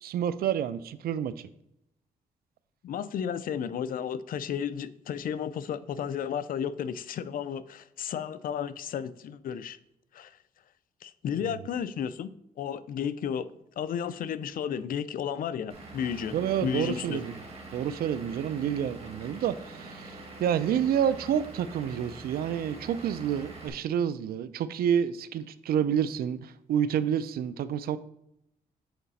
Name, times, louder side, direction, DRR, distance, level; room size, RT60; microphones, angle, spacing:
voice 1, 0.0-1.5 11.4-11.6 16.3-17.3 17.7-28.0, right 9 dB, 80° right, 0.4 m, -29 dB
voice 2, 2.8-9.8 10.1-10.3 11.0-12.3 12.6-13.5 13.8-16.4 16.6-17.2, left 8 dB, 70° left, 0.4 m, -33 dB
Vehicle / Engine, 15.7-23.7, right 2 dB, 40° right, 1.7 m, -44 dB
7.8 x 4.1 x 4.1 m
cardioid pair, 100°, 15 cm